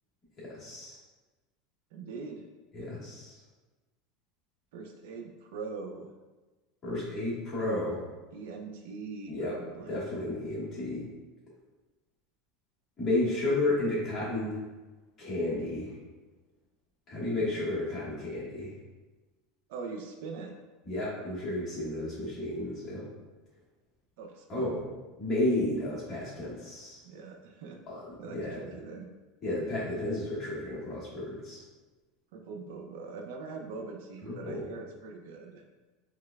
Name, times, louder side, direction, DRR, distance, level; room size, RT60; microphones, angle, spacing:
voice 1, 0.4-1.0 2.7-3.4 6.8-8.0 9.3-9.5 9.9-11.0 13.0-14.6 15.2-15.9 17.1-18.7 20.8-23.1 24.5-24.8 25.2-27.0 27.9-28.6 29.4-31.6 34.2-34.6, left 2 dB, 25° left, -8 dB, 1.3 m, -32 dB
voice 2, 1.9-2.5 2.8-2.9 4.7-6.1 8.3-10.1 17.4-17.5 19.7-20.5 24.2-24.9 27.0-27.8 28.2-29.1 32.3-35.6, right 4 dB, 65° right, 3 dB, 0.4 m, -42 dB
4.8 x 2.2 x 2.3 m, 1.2 s
supercardioid pair, 165°, 0 cm